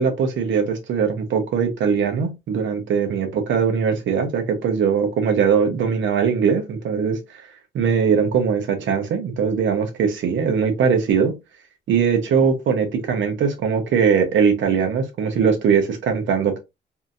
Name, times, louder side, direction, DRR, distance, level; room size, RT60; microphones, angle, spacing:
voice 1, 0.0-7.2 7.7-11.3 11.9-16.6, right 6 dB, 75° right, 0.9 m, -20 dB
2.8 x 2.6 x 2.4 m
cardioid pair, 90°, 20 cm